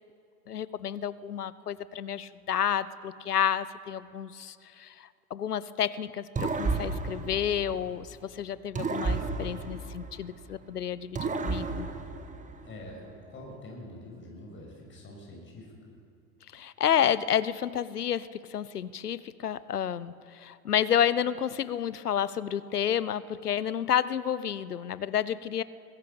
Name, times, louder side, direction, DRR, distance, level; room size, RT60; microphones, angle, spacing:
voice 1, 0.5-11.9 16.5-25.6, left 9 dB, 80° left, 17 dB, 0.8 m, -30 dB
sound 1, 6.4-8.2 8.8-10.6 11.1-12.9, right 4 dB, 15° right, 1.6 m, -33 dB
voice 2, 12.6-15.9, left 1 dB, 25° left, -1 dB, 6.5 m, -45 dB
20.5 x 14.5 x 8.7 m, 2.3 s
figure-of-eight pair, 85°, 45 cm